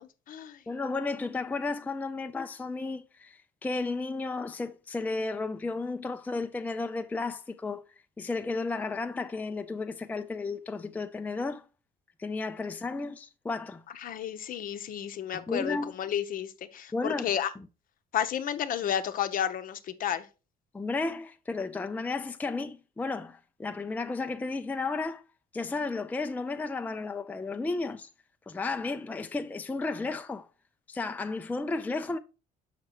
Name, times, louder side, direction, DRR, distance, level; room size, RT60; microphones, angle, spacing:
voice 1, 0.0-0.6 14.0-17.5 18.1-20.3, left 9 dB, 55° left, 0.8 m, -32 dB
voice 2, 0.7-7.8 8.2-11.6 12.2-13.8 15.3-15.9 16.9-17.3 20.7-25.2 25.5-28.1 28.5-30.5 30.9-32.2, left 3 dB, 10° left, 0.4 m, -33 dB
6.2 x 5.8 x 2.9 m
cardioid pair, 110°, 17 cm